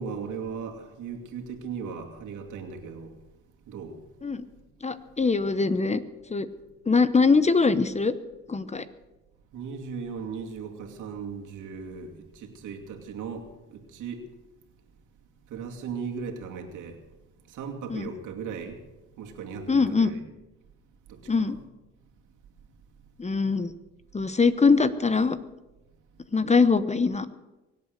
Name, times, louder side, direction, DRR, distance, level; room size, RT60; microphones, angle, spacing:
voice 1, 0.0-3.1 3.7-4.0 9.5-14.3 15.5-17.0 17.5-18.8 19.2-20.2 21.1-21.6, right 6 dB, 80° right, 2.5 m, -37 dB
voice 2, 4.8-6.0 6.3-6.5 6.9-8.1 8.5-8.8 17.9-18.1 19.7-20.1 21.3-21.6 23.2-23.7 24.1-25.4 26.3-27.3, left 4 dB, 20° left, 0.9 m, -22 dB
23.5 x 8.4 x 6.6 m
cardioid pair, 90°, 30 cm